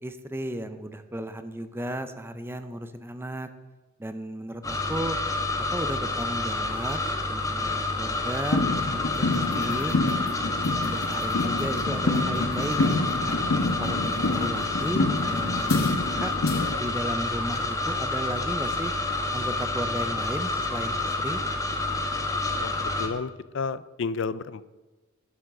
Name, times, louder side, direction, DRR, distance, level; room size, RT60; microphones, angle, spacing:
voice 1, 0.0-3.5 4.0-5.2 5.7-7.0 7.3-9.9 10.4-12.8 13.2-13.4 13.8-15.9 16.2-16.3 16.7-18.9 19.3-21.4, right 1 dB, 10° right, 9 dB, 0.6 m, -34 dB
sound 1, 4.6-23.1, left 2 dB, 15° left, 1.1 m, -29 dB
sound 2, 8.5-16.8, left 2 dB, 90° left, 1.0 m, -27 dB
voice 2, 22.6-24.7, left 4 dB, 60° left, 16 dB, 0.5 m, -32 dB
11.5 x 7.2 x 6.6 m, 1.2 s
head